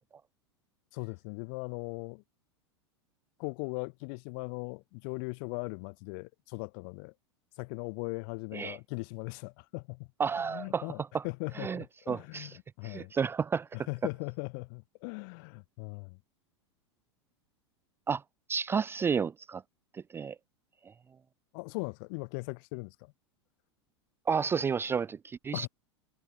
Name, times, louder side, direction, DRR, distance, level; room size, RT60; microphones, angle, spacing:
voice 1, 0.9-2.2 3.4-7.1 7.6-10.1 10.4-13.1 13.7-16.2 21.5-23.1 25.5-25.7, left 35 dB, 50° left, 7.3 m, -39 dB
voice 2, 10.2-10.9 11.1-11.2 11.6-12.5 12.8-13.7 18.1-18.2 18.5-19.6 19.9-20.4 20.9-21.0 24.3-25.7, right 6 dB, 15° right, 0.6 m, -31 dB
figure-of-eight pair, 90°, 15 cm